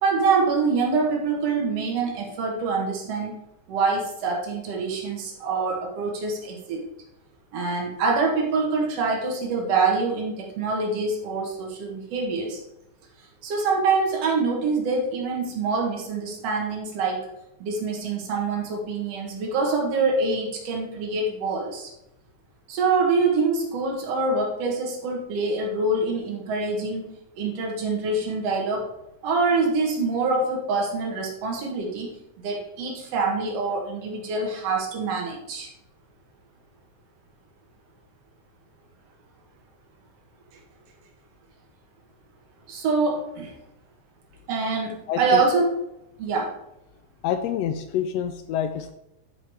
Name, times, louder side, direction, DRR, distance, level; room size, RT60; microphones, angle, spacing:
voice 1, 0.0-3.4 3.7-6.8 7.5-12.6 13.4-17.3 17.6-21.9 22.7-28.9 29.2-32.1 32.4-35.7 42.7-43.5 44.5-45.7 46.2-46.6, right 4 dB, 60° right, 0 dB, 2.6 m, -25 dB
voice 2, 45.1-45.4 47.2-48.9, left 9 dB, 90° left, 7 dB, 1.4 m, -27 dB
9.8 x 5.0 x 4.8 m, 0.86 s
omnidirectional pair, 3.5 m